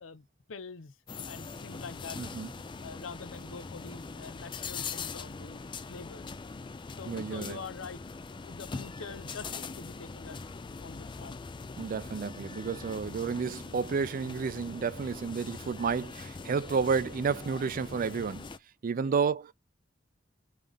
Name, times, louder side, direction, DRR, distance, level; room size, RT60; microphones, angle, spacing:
voice 1, 0.0-0.9 1.3-2.2 2.8-5.6 5.9-6.4 7.0-8.2 8.4-10.5 10.8-11.3 18.9-19.2, left 5 dB, 75° left, 0.6 m, -45 dB
sound 1, 1.1-18.6, left 4 dB, 25° left, 0.4 m, -42 dB
voice 2, 2.2-2.5 7.1-7.6 11.8-18.4 18.8-19.5, right 5 dB, 45° right, 0.4 m, -31 dB
3.6 x 3.4 x 3.4 m
head